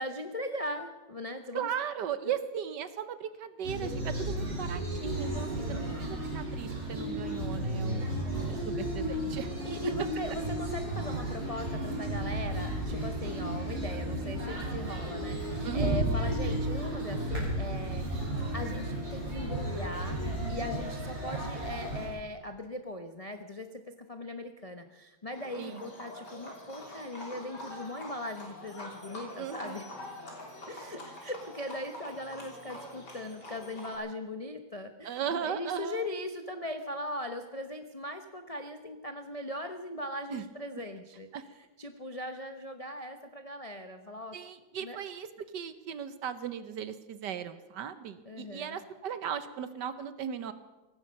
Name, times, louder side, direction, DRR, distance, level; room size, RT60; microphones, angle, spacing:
voice 1, 0.0-1.7 2.3-2.4 4.4-4.7 5.6-5.9 7.8-8.1 9.6-18.2 18.5-20.2 20.5-29.9 30.7-41.3 41.8-44.4 44.8-45.0 48.3-48.8, left 1 dB, 40° left, 6 dB, 0.5 m, -39 dB
voice 2, 1.5-8.2 8.5-9.5 15.6-16.1 25.6-25.9 29.3-29.8 35.0-36.1 40.3-40.5 41.3-41.4 44.3-50.5, right 8 dB, 65° right, 12 dB, 1.4 m, -37 dB
sound 1, 3.6-22.1, right 1 dB, 35° right, 7.0 m, -33 dB
Livestock farm animals working animals, 25.3-34.0, left 1 dB, 60° left, 4.1 m, -45 dB
18.0 x 15.0 x 5.3 m, 1.1 s
omnidirectional pair, 2.1 m